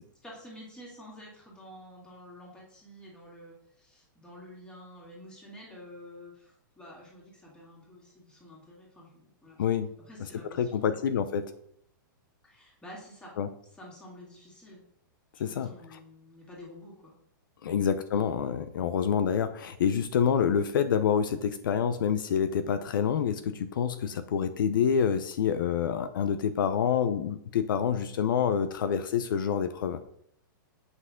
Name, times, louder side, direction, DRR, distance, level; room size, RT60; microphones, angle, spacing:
voice 1, 0.2-9.6 10.0-11.0 12.4-13.4 13.7-14.8 15.3-17.1 17.6-17.8, left 1 dB, 5° left, -4 dB, 2.3 m, -49 dB
voice 2, 10.6-11.5 13.4-13.5 15.4-16.0 17.6-30.0, left 7 dB, 70° left, 10 dB, 0.7 m, -27 dB
8.0 x 6.0 x 3.7 m, 0.68 s
hypercardioid pair, 160°, 11 cm